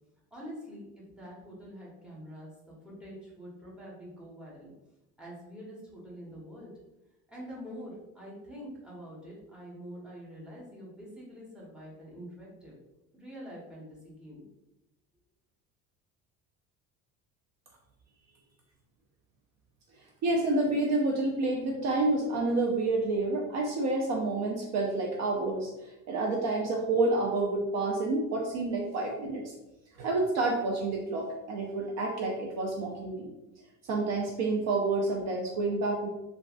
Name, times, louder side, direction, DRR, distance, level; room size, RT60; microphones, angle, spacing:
voice 1, 0.3-4.7 5.2-6.7 7.3-12.8 13.1-14.5, equal, 5° right, -5 dB, 1.0 m, -45 dB
voice 2, 20.2-29.5 30.0-33.3 33.9-36.1, right 2 dB, 50° right, 0 dB, 0.5 m, -29 dB
3.1 x 2.4 x 2.4 m, 0.97 s
cardioid pair, 130°, 34 cm